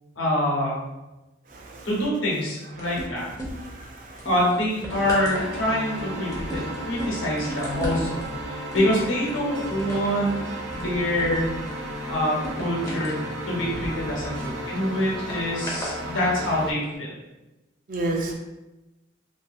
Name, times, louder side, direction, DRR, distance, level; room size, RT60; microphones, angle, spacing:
voice 1, 0.2-0.8 1.8-3.3 4.2-6.6 6.9-10.3 10.7-11.5 12.1-13.2 13.5-17.1, left 1 dB, 85° left, -4 dB, 0.9 m, -25 dB
voice 2, 1.5-1.9 3.5-4.3 17.9-18.3, right 2 dB, 45° right, 1 dB, 0.4 m, -31 dB
sound 1, 2.8-3.8 4.2-14.5 15.3-16.0 16.7-16.8, equal, 20° left, 0.5 m, -36 dB
sound 2, 4.9-16.7, right 1 dB, 85° right, 0.6 m, -34 dB
2.7 x 2.4 x 2.4 m, 1.0 s
head